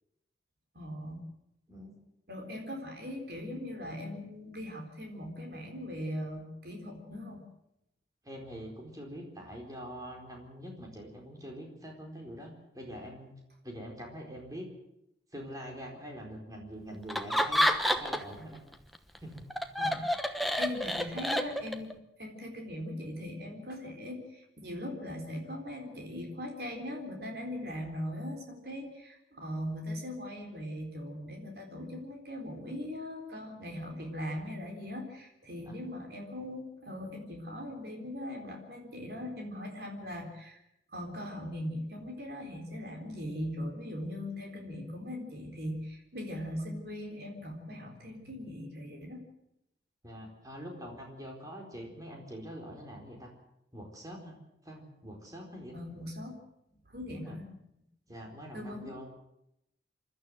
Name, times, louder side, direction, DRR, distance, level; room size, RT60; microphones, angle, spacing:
voice 1, 0.7-1.2 2.3-7.4 19.8-20.1 20.6-40.6 40.9-49.2 55.7-56.4 56.9-57.6 58.5-59.1, left 1 dB, 60° right, 2 dB, 4.2 m, -40 dB
voice 2, 8.2-13.3 13.6-14.6 15.3-18.6 19.2-19.4 35.7-35.8 50.0-53.3 53.7-54.3 54.6-55.7 57.1-57.4 58.1-59.1, equal, 20° right, 0 dB, 4.4 m, -44 dB
Laughter, 17.1-18.4 18.7-21.9, equal, ahead, 1.0 m, -29 dB
27.5 x 12.5 x 7.9 m, 0.82 s
head